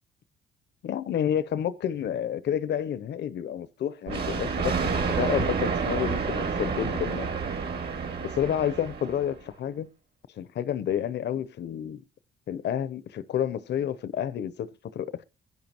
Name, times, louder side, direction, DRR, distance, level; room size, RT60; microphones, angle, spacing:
voice 1, 0.8-7.4 8.2-9.9 10.4-12.0 12.5-15.2, left 9 dB, 60° left, 0.7 m, -30 dB
Thunder, 4.1-9.4, right 5 dB, 55° right, 2.6 m, -29 dB
22.5 x 10.5 x 2.9 m
cardioid pair, 90°, 20 cm